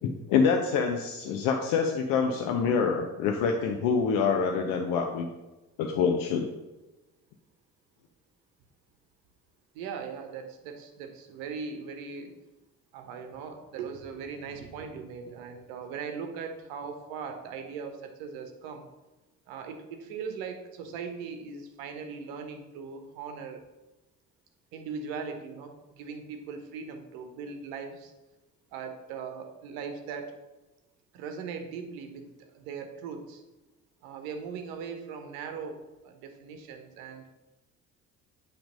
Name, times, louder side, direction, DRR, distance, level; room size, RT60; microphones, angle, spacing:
voice 1, 0.0-5.3 5.8-6.5, left 5 dB, 50° left, 4 dB, 0.8 m, -26 dB
voice 2, 9.7-12.4 12.9-18.9 19.5-23.6 24.7-28.1 28.7-30.3 31.1-33.4 34.0-37.3, right 5 dB, 60° right, 6 dB, 1.1 m, -39 dB
8.6 x 3.3 x 5.4 m, 1.1 s
figure-of-eight pair, 50°, 43 cm